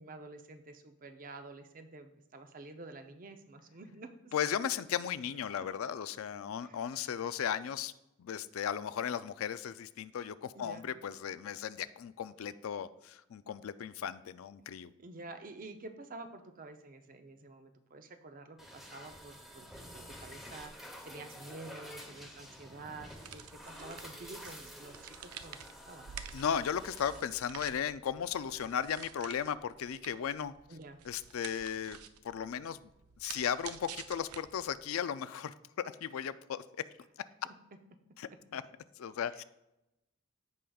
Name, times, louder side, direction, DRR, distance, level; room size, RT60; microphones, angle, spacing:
voice 1, 0.0-4.3 6.6-6.8 10.5-10.9 15.0-19.7 19.9-26.1 30.7-31.0 39.3-39.4, right 3 dB, 40° right, 7 dB, 0.6 m, -49 dB
voice 2, 4.3-7.9 8.2-14.9 26.3-30.5 31.1-32.0 32.2-32.8 33.2-36.6 38.2-38.6 39.0-39.4, left 8 dB, 70° left, 13 dB, 0.4 m, -36 dB
sound 1, 18.6-27.2, equal, ahead, 0.9 m, -50 dB
sound 2, 23.0-34.8, right 8 dB, 85° right, 0.5 m, -50 dB
15.0 x 5.0 x 2.3 m, 0.89 s
head